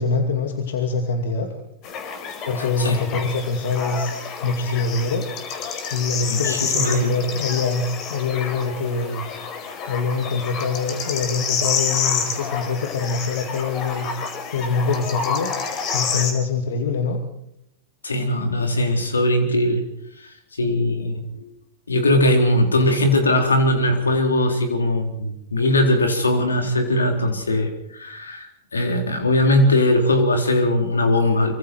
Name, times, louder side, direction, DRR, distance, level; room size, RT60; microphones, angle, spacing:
voice 1, 0.0-1.5 2.5-4.1 4.4-5.2 5.9-9.2 9.9-14.1 14.5-15.5 15.9-17.2, left 4 dB, 70° left, 5 dB, 2.5 m, -24 dB
sound 1, 1.8-16.3, left 6 dB, 40° left, 4.5 m, -28 dB
voice 2, 6.3-7.1 18.0-19.8 20.6-21.5 21.9-31.6, left 1 dB, 85° left, 4 dB, 3.9 m, -20 dB
25.5 x 25.0 x 4.7 m, 0.77 s
hypercardioid pair, 100°, 0 cm